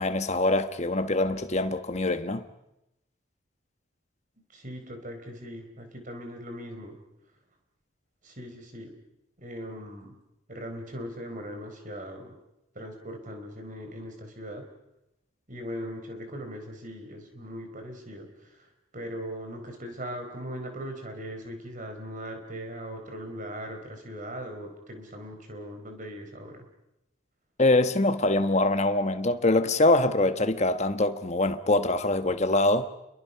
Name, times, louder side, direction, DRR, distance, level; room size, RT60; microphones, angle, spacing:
voice 1, 0.0-2.4 27.6-32.9, left 2 dB, 35° left, 1.2 m, -24 dB
voice 2, 4.5-7.0 8.2-8.9 9.4-10.1 10.5-12.3 12.7-14.7 15.5-18.3 18.6-26.6, equal, 40° right, 4.3 m, -39 dB
30.0 x 22.5 x 5.7 m
head